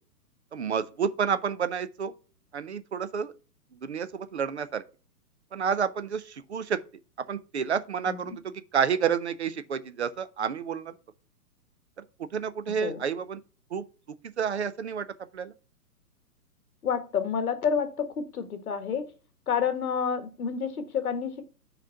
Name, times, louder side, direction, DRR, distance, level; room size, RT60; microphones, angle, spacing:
voice 1, 0.5-2.1 2.5-3.3 3.8-4.8 5.5-6.8 7.3-10.9 12.3-13.4 13.7-13.8 14.4-15.1 15.3-15.5, right 7 dB, 45° right, 0.6 m, -29 dB
voice 2, 8.1-8.4 12.7-13.0 16.8-19.1 19.5-21.4, left 7 dB, 65° left, 1.6 m, -29 dB
6.3 x 4.2 x 5.6 m
hypercardioid pair, 175°, 48 cm